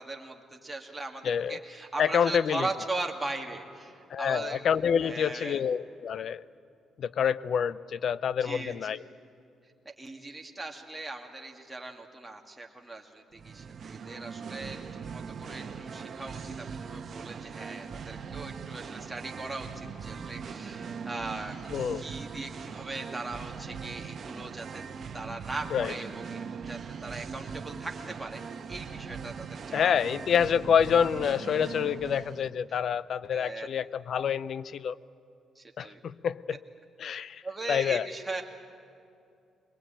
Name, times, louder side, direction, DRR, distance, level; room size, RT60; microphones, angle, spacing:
voice 1, 0.0-4.6 5.0-5.6 8.4-9.0 10.0-21.6 22.0-24.8 25.1-30.0 33.3-33.7 35.6-36.0 37.4-38.4, right 2 dB, 10° right, 1 dB, 2.3 m, -39 dB
voice 2, 1.2-1.6 2.0-2.7 4.1-6.4 7.0-9.0 21.7-22.1 25.7-25.9 29.7-35.0 35.8-36.6 37.0-37.4 37.7-38.1, left 8 dB, 60° left, 18 dB, 0.5 m, -27 dB
Singing, 13.3-32.5, right 6 dB, 50° right, 1.2 m, -40 dB
22.5 x 20.5 x 9.1 m, 2.6 s
cardioid pair, 90°, 0 cm